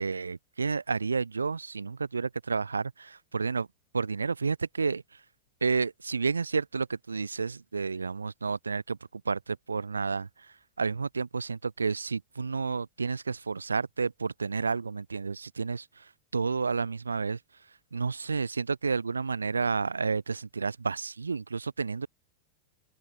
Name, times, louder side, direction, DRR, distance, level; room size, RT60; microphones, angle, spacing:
voice 1, 0.0-3.7 3.9-5.0 5.6-10.3 10.8-15.8 16.3-17.4 17.9-22.1, right 4 dB, 75° right, 4.8 m, -30 dB
open air
figure-of-eight pair, 90°, 0 cm